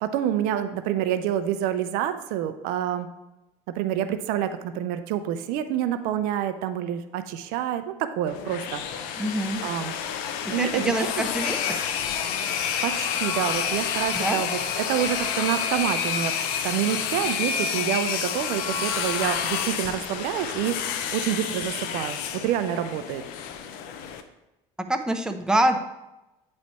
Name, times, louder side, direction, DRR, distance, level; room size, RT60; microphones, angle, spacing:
voice 1, 0.0-3.1 3.7-9.2 9.6-9.9 10.5-11.2 12.8-16.4 16.6-23.2, right 10 dB, 75° right, 10 dB, 0.5 m, -28 dB
sound 1, 8.3-24.2, left 8 dB, 75° left, 0.6 m, -29 dB
voice 2, 9.2-9.6 10.6-11.8 14.1-14.4 24.9-25.8, right 1 dB, 5° right, 5 dB, 0.7 m, -25 dB
9.2 x 3.2 x 4.2 m, 0.98 s
supercardioid pair, 90°, 15 cm